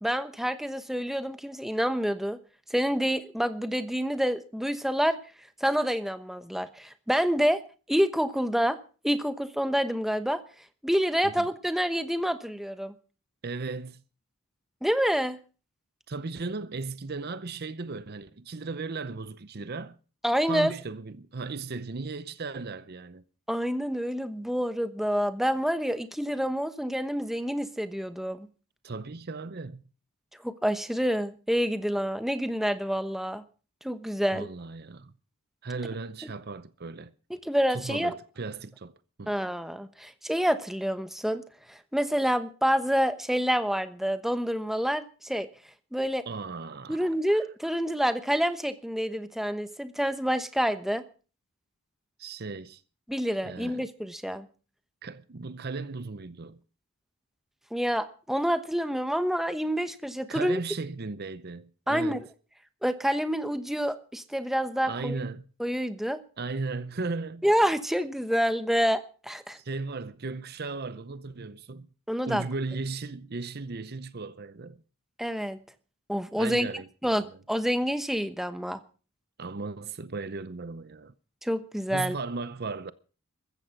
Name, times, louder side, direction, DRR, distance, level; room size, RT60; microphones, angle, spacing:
voice 1, 0.0-2.4 2.7-5.2 5.6-7.6 7.9-8.8 9.0-10.4 10.8-12.9 14.8-15.4 20.2-20.7 23.5-28.5 30.4-33.4 33.8-34.5 37.3-38.1 39.3-41.4 41.7-45.5 45.9-46.2 46.9-51.0 53.1-54.5 57.7-60.6 61.9-62.2 62.8-65.2 65.6-66.2 67.4-69.6 72.1-72.4 75.2-75.6 76.1-76.7 77.0-78.8 81.4-82.2, equal, ahead, 1.0 m, -27 dB
voice 2, 13.4-14.0 16.1-20.0 20.4-23.2 28.8-29.8 34.3-35.1 35.6-37.1 37.7-39.3 46.3-47.0 47.3-47.4 52.2-52.8 53.4-53.8 55.0-56.6 60.3-62.2 64.8-65.4 66.4-67.4 69.6-71.9 72.3-74.8 76.4-77.4 79.4-81.1 81.9-82.9, right 3 dB, 45° right, 0.7 m, -36 dB
15.0 x 14.0 x 5.9 m
head